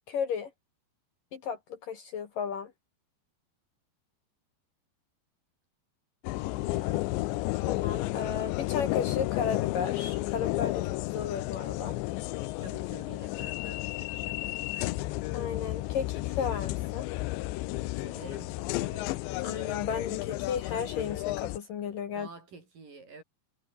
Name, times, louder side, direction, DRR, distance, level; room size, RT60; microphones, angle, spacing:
voice 1, 0.1-0.5 1.3-2.7 7.6-12.0 15.3-17.1 19.4-22.3, left 7 dB, 55° left, 3.2 m, -34 dB
sound 1, 6.2-21.6, left 19 dB, 85° left, 3.1 m, -32 dB
voice 2, 6.6-7.1 12.6-15.0 17.9-19.2 22.1-23.2, right 4 dB, 50° right, 8.2 m, -49 dB
omnidirectional pair, 5.2 m